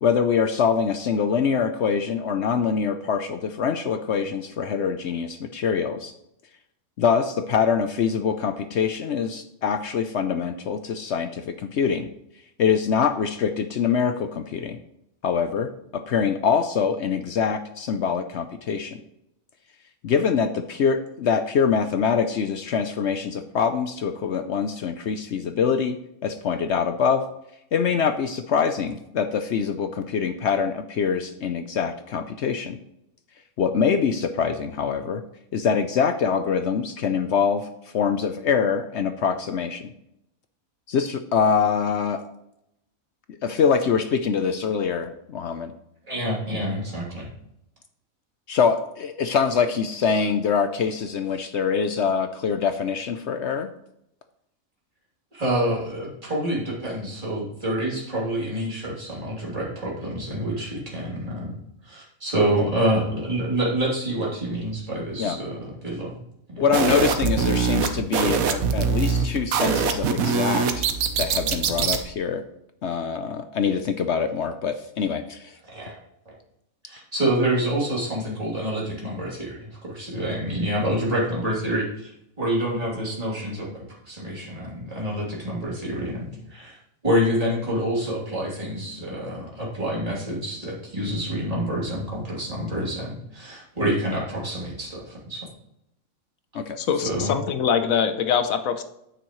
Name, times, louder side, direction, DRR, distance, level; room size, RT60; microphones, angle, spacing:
voice 1, 0.0-6.1 7.0-12.1 12.6-14.8 15.2-19.0 20.0-26.0 26.2-27.2 27.7-32.8 33.6-35.2 35.5-37.7 37.9-39.9 40.9-42.2 43.4-45.7 48.5-53.7 65.2-65.4 66.6-70.9 71.2-72.4 72.8-75.6 96.5-96.8, left 6 dB, 65° left, 8 dB, 0.8 m, -24 dB
voice 2, 46.1-47.3 55.3-61.6 61.8-66.2 66.5-66.6 75.7-75.9 76.8-86.8 87.0-95.5 97.0-97.3, right 1 dB, 25° right, -5 dB, 3.0 m, -27 dB
sound 1, 66.7-72.0, right 6 dB, 80° right, 1.3 m, -23 dB
voice 3, 96.8-98.8, left 7 dB, 80° left, 9 dB, 1.2 m, -23 dB
9.3 x 9.0 x 3.1 m, 0.80 s
omnidirectional pair, 1.4 m